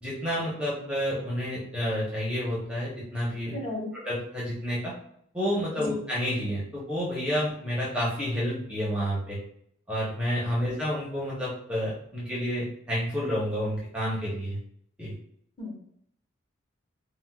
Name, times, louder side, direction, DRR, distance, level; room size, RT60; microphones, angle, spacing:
voice 1, 0.0-3.6 3.9-4.9 5.3-9.4 9.9-14.6 15.0-15.1, equal, 5° right, -7 dB, 0.7 m, -30 dB
voice 2, 3.5-3.9 5.8-6.0 15.6-15.8, left 2 dB, 25° left, -4 dB, 1.0 m, -34 dB
4.3 x 2.1 x 2.2 m, 0.69 s
head